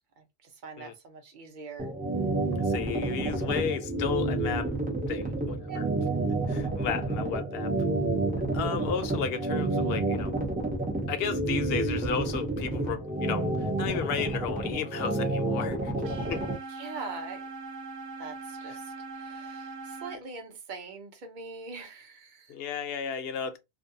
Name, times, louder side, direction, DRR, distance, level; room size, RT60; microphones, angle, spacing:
voice 1, 0.2-1.9 5.7-5.9 16.7-17.5 18.2-22.5, right 4 dB, 50° right, 0.7 m, -43 dB
sound 1, 1.8-16.5, right 2 dB, 15° right, 0.3 m, -29 dB
voice 2, 2.7-4.7 5.1-5.8 6.5-7.7 8.5-10.3 11.1-15.9 16.3-16.4 18.7-18.8 22.5-23.6, left 7 dB, 65° left, 0.7 m, -33 dB
sound 2, 16.0-20.2, right 4 dB, 85° right, 0.9 m, -41 dB
2.5 x 2.2 x 2.6 m
omnidirectional pair, 1.2 m